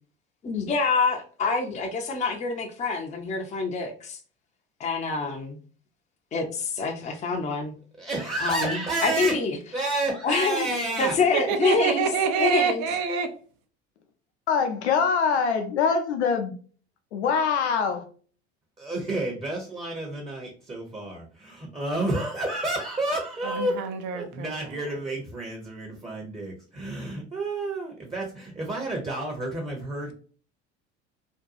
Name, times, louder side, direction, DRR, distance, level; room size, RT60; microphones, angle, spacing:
voice 1, 0.4-4.2 4.8-5.6 6.3-7.7 8.4-9.6 10.2-10.7 11.0-12.0 12.4-12.9, left 4 dB, 20° left, 1 dB, 0.5 m, -26 dB
voice 2, 8.0-9.4 9.7-11.1 18.8-23.8 24.1-30.1, right 2 dB, 15° right, 0 dB, 0.8 m, -30 dB
voice 3, 11.3-13.3 23.4-24.7, right 6 dB, 60° right, 7 dB, 0.7 m, -26 dB
voice 4, 14.5-16.6 17.1-18.0, left 5 dB, 80° left, 6 dB, 0.6 m, -24 dB
2.6 x 2.2 x 2.5 m, 0.42 s
hypercardioid pair, 70°, 33 cm